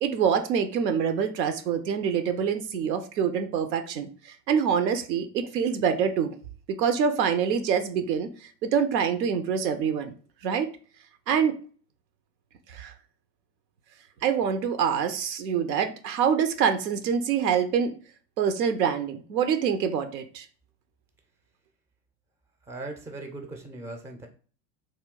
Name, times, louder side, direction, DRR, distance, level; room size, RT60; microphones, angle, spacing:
voice 1, 0.0-6.3 6.7-10.1 10.4-10.7 11.3-11.6 12.7-12.9 14.2-18.0 18.4-20.5, right 7 dB, 75° right, 8 dB, 0.7 m, -25 dB
voice 2, 22.6-24.3, right 2 dB, 5° right, 4 dB, 0.4 m, -39 dB
3.2 x 2.2 x 3.6 m, 0.40 s
figure-of-eight pair, 75°, 50 cm